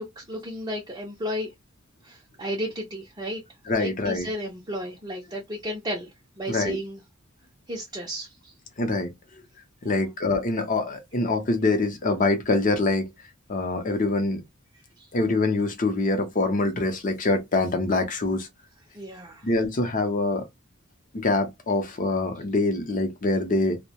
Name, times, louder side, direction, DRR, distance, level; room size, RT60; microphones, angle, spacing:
voice 1, 0.0-1.5 2.0-3.4 3.7-6.1 6.4-7.0 7.7-8.5 9.8-10.1 15.0-15.1 18.9-19.5, equal, 20° right, 0.5 m, -33 dB
voice 2, 3.7-4.3 6.5-6.8 8.8-9.1 9.8-13.1 13.5-14.4 15.1-18.5 19.4-20.4 21.1-23.8, left 2 dB, 40° left, 0.6 m, -24 dB
2.2 x 2.1 x 2.8 m
head